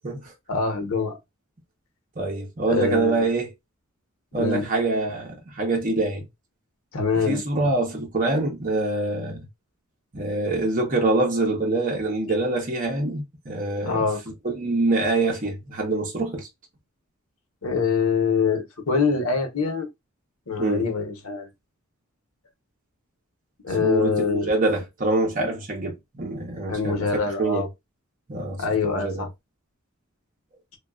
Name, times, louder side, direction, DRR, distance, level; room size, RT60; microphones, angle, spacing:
voice 1, 0.5-1.2 2.7-3.2 4.4-4.6 6.9-7.4 13.8-14.2 17.6-19.9 20.5-21.5 23.6-24.5 26.7-27.7 28.6-29.3, left 5 dB, 85° left, 0.8 m, -24 dB
voice 2, 2.2-3.5 4.3-6.2 7.2-9.4 10.1-14.0 14.4-16.5 20.6-20.9 23.8-27.1 27.4-27.7 28.3-29.3, right 2 dB, 40° right, 0.8 m, -25 dB
3.0 x 2.3 x 2.3 m
head